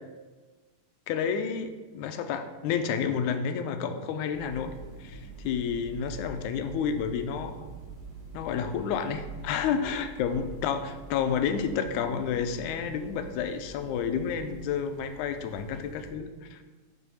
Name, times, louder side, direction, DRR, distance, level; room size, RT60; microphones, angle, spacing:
voice 1, 1.1-4.7 5.0-7.6 8.3-16.6, left 7 dB, 80° left, 8 dB, 2.0 m, -30 dB
sound 1, 4.3-16.1, right 2 dB, 50° right, 2.6 m, -45 dB
5.9 x 5.5 x 6.2 m, 1.3 s
omnidirectional pair, 3.6 m